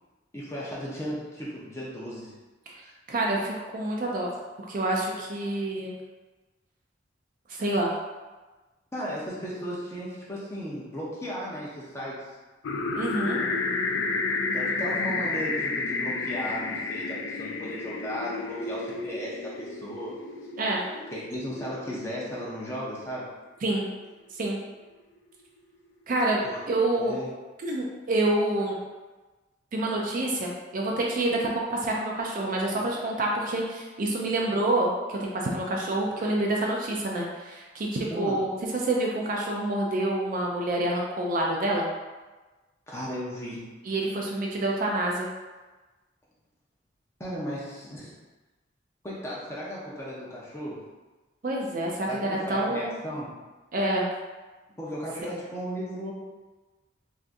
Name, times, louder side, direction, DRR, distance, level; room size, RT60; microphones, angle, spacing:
voice 1, 0.3-2.3 8.9-12.3 14.2-20.1 21.1-23.3 26.4-26.6 27.0-27.3 38.1-38.4 42.9-43.7 47.2-48.1 49.0-50.8 52.1-53.3 54.8-56.1, equal, 15° left, -6 dB, 0.7 m, -35 dB
voice 2, 3.1-4.3 4.7-5.9 7.5-7.9 12.9-13.4 20.6-20.8 23.6-23.9 24.4-24.6 26.1-26.4 26.7-27.1 27.6-28.8 29.7-38.5 38.8-41.9 43.9-45.3 51.4-53.0 53.7-54.1, right 1 dB, 45° right, -2 dB, 0.4 m, -27 dB
sound 1, 12.6-22.5, left 3 dB, 85° left, 0.3 m, -31 dB
3.4 x 2.6 x 2.5 m, 1.2 s
head